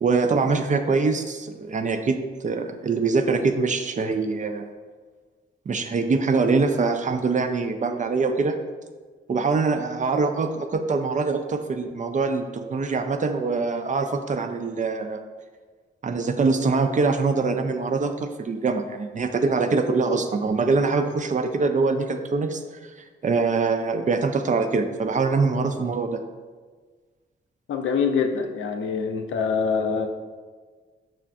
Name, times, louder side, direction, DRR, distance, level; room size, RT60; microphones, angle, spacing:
voice 1, 0.0-2.2 2.4-4.7 5.7-8.5 9.3-15.2 16.0-22.6 23.2-26.2, right 4 dB, 35° right, 6 dB, 0.4 m, -23 dB
voice 2, 27.7-30.1, left 5 dB, 70° left, 4 dB, 0.4 m, -24 dB
5.5 x 2.5 x 2.3 m, 1.5 s
cardioid pair, 55°, 21 cm